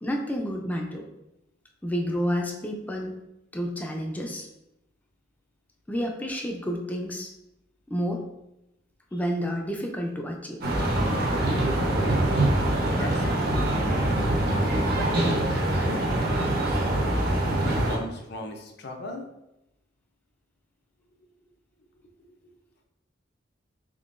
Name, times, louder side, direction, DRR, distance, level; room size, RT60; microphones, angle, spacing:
voice 1, 0.0-1.0 1.8-3.2 3.5-4.5 5.9-7.3 7.9-8.3 9.1-10.6, equal, 10° left, 1 dB, 0.4 m, -30 dB
sound 1, 10.6-18.0, right 1 dB, 55° right, 0.8 m, -24 dB
voice 2, 12.9-14.2 14.5-15.6 16.7-19.3 22.0-22.1, left 1 dB, 60° left, 3 dB, 0.6 m, -39 dB
3.7 x 3.6 x 2.5 m, 0.87 s
head